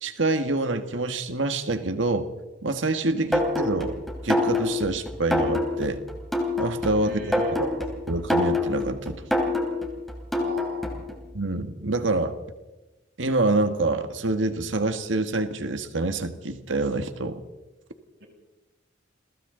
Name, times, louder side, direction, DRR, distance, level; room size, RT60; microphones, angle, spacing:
voice 1, 0.0-2.3 2.6-4.0 4.2-6.0 6.6-9.2 11.3-12.3 13.2-17.4, right 2 dB, 85° right, 8 dB, 1.6 m, -26 dB
sound 1, 3.3-11.1, left 2 dB, ahead, 3.7 m, -26 dB
voice 2, 7.0-7.6 10.4-11.0 18.2-18.3, right 2 dB, 60° right, 0 dB, 7.2 m, -39 dB
29.5 x 23.5 x 3.9 m, 1.1 s
head